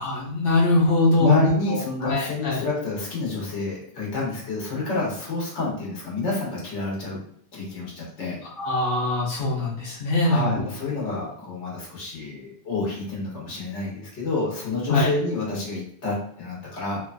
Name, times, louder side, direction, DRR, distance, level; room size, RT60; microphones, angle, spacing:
voice 1, 0.0-2.6 8.6-10.5 14.9-15.1, left 2 dB, 60° left, -6 dB, 1.0 m, -22 dB
voice 2, 1.2-7.2 7.5-8.4 10.2-17.0, left 3 dB, 85° left, -5 dB, 1.3 m, -29 dB
3.0 x 2.2 x 2.5 m, 0.64 s
omnidirectional pair, 1.2 m